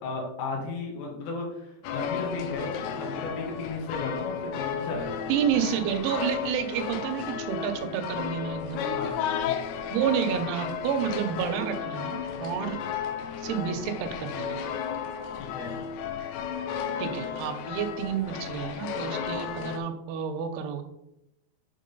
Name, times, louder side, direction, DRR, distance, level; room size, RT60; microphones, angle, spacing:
voice 1, 0.0-5.3 8.9-9.5 15.3-15.8, left 3 dB, 65° left, -1 dB, 3.0 m, -35 dB
sound 1, 1.8-19.8, left 7 dB, 85° left, 2.4 m, -33 dB
voice 2, 5.3-8.9 9.9-12.8 13.4-14.6 17.0-20.8, right 8 dB, 80° right, 7 dB, 2.5 m, -30 dB
7.5 x 3.6 x 5.3 m, 0.84 s
omnidirectional pair, 4.9 m